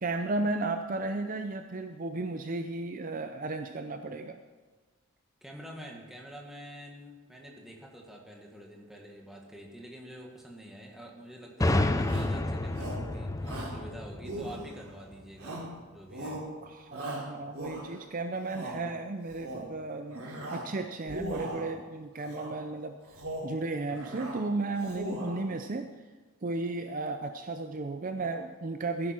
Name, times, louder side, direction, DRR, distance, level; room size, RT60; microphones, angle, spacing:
voice 1, 0.0-4.4 16.6-20.2 20.5-23.0 23.4-25.9 26.4-29.1, right 3 dB, 40° right, 7 dB, 0.5 m, -34 dB
voice 2, 5.4-16.4, equal, ahead, -1 dB, 1.7 m, -47 dB
sound 1, 11.6-15.3, left 2 dB, 15° left, 0.4 m, -30 dB
Shout, 12.0-12.4 12.7-13.1 13.4-13.8 14.2-14.9 15.4-15.8 16.1-16.5 16.9-18.0 18.4-18.8 19.3-19.7 20.1-20.7 21.0-21.7 22.2-22.6 23.0-23.6 23.9-24.4 24.8-25.5, right 1 dB, 85° right, 3.5 m, -39 dB
16.0 x 10.5 x 4.5 m, 1.3 s
head